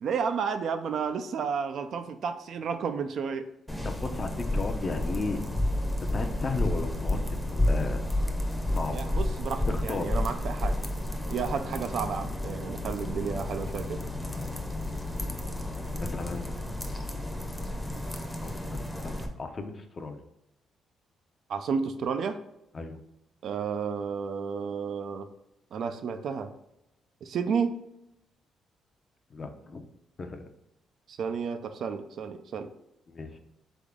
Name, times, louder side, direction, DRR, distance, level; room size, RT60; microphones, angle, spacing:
voice 1, 0.0-3.5 8.9-10.8 11.3-14.0 21.5-22.4 23.4-25.3 25.7-26.5 27.2-27.8 31.1-32.7, right 6 dB, 65° right, 9 dB, 0.4 m, -31 dB
sound 1, 3.7-19.3, left 1 dB, 5° left, 0.7 m, -31 dB
voice 2, 3.8-5.4 6.0-7.2 7.5-8.0 8.7-9.0 9.7-10.2 15.2-15.6 16.0-16.6 18.4-20.2 22.7-23.0 29.3-29.8 30.2-30.4 33.1-33.4, left 3 dB, 35° left, 6 dB, 0.6 m, -35 dB
3.7 x 3.6 x 3.5 m, 0.86 s
cardioid pair, 90°, 0 cm